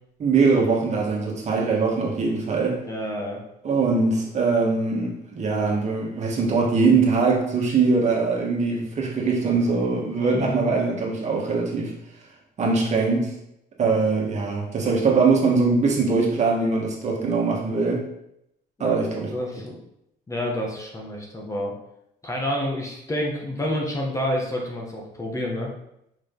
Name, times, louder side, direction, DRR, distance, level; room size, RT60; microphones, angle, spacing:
voice 1, 0.2-2.8 3.6-11.9 12.6-13.3 13.8-18.0 18.8-19.3, right 4 dB, 45° right, -2 dB, 1.6 m, -22 dB
voice 2, 2.9-3.4 10.2-10.8 18.8-19.0 19.3-19.8 20.3-21.7 22.2-25.7, left 1 dB, 20° left, -1 dB, 1.4 m, -29 dB
5.1 x 5.0 x 3.9 m, 0.80 s
cardioid pair, 110°, 17 cm